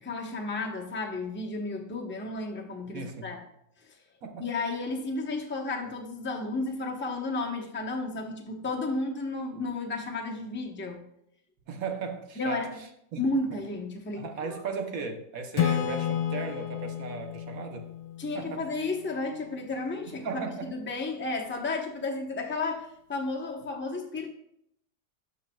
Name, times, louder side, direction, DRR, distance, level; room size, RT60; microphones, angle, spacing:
voice 1, 0.0-3.4 3.8-3.9 4.4-11.0 12.4-12.8 13.2-14.6 18.2-20.2 20.7-24.3, left 3 dB, 15° left, 1 dB, 0.3 m, -33 dB
voice 2, 2.9-3.4 4.2-4.5 11.7-13.2 14.2-17.9 18.3-18.7 20.1-20.7, right 4 dB, 60° right, 5 dB, 1.2 m, -36 dB
Acoustic guitar / Strum, 15.6-19.1, left 10 dB, 80° left, 1.2 m, -31 dB
12.0 x 5.6 x 2.2 m, 0.77 s
omnidirectional pair, 1.8 m